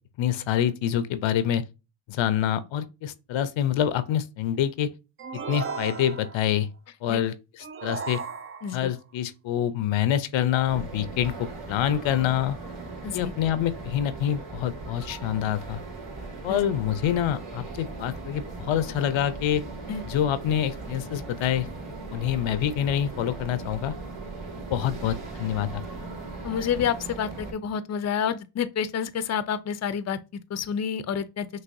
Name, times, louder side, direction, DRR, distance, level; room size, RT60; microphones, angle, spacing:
voice 1, 0.2-1.6 2.1-4.9 5.3-6.7 7.0-8.2 8.7-12.6 13.1-15.8 16.4-19.6 20.0-21.7 22.1-23.9 24.7-25.8 26.8-26.9, left 10 dB, 80° left, 0.7 m, -26 dB
sound 1, 5.2-6.5 7.6-8.9, right 5 dB, 30° right, 0.5 m, -35 dB
sound 2, 10.7-27.5, right 3 dB, 80° right, 2.2 m, -38 dB
voice 2, 13.0-13.3 16.5-16.6 19.9-20.0 26.4-30.2 30.5-31.5, left 7 dB, 35° left, 0.5 m, -29 dB
5.6 x 3.0 x 2.6 m
cardioid pair, 70°, 45 cm